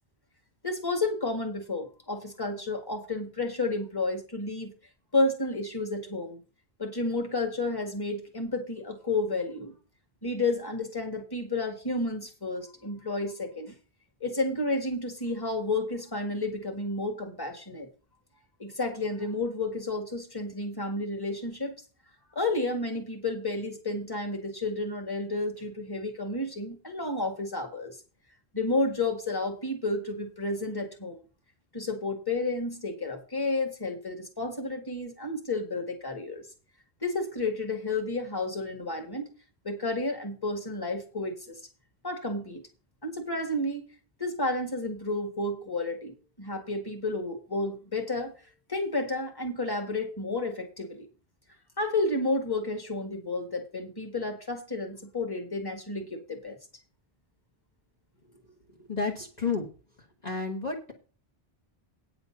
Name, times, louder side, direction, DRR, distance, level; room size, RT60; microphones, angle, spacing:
voice 1, 0.6-4.7 5.1-6.4 6.8-9.7 10.2-13.7 14.2-17.9 18.6-21.8 22.3-28.0 28.5-31.2 31.7-36.4 37.0-39.3 39.6-41.6 42.0-42.6 43.0-43.9 44.2-48.3 48.7-51.1 51.8-56.6, left 2 dB, 20° left, 5 dB, 1.9 m, -31 dB
voice 2, 58.8-59.7 60.2-60.9, left 4 dB, 40° left, 0 dB, 1.6 m, -31 dB
9.3 x 6.9 x 6.0 m, 0.35 s
omnidirectional pair, 1.1 m